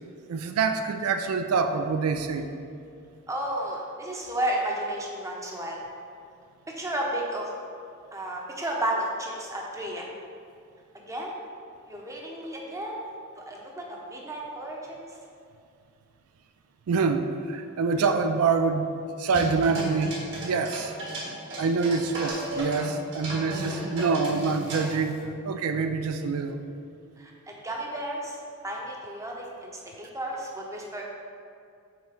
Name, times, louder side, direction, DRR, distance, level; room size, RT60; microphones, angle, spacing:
voice 1, 0.3-2.5 16.9-18.9 19.2-20.2 20.4-20.9 21.6-26.6, right 4 dB, 80° right, 7 dB, 0.4 m, -26 dB
voice 2, 3.3-5.8 6.7-7.5 8.1-10.1 11.1-11.3 11.9-13.0 13.4-15.2 27.2-28.4 28.6-31.0, right 1 dB, 15° right, -2 dB, 0.8 m, -32 dB
sound 1, 19.3-22.9 23.1-25.2, right 1 dB, 55° right, 1.4 m, -34 dB
5.8 x 4.3 x 5.0 m, 2.4 s
head